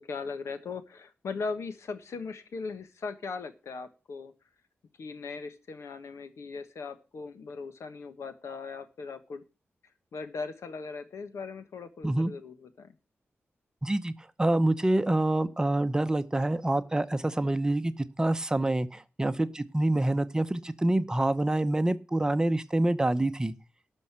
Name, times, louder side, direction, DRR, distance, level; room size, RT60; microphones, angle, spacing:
voice 1, 0.0-4.3 5.0-9.4 10.1-12.9, left 4 dB, 90° left, 10 dB, 1.4 m, -39 dB
voice 2, 13.8-23.5, right 1 dB, 15° right, 11 dB, 0.7 m, -26 dB
12.5 x 5.4 x 7.4 m, 0.32 s
wide cardioid pair, 150°, 5 cm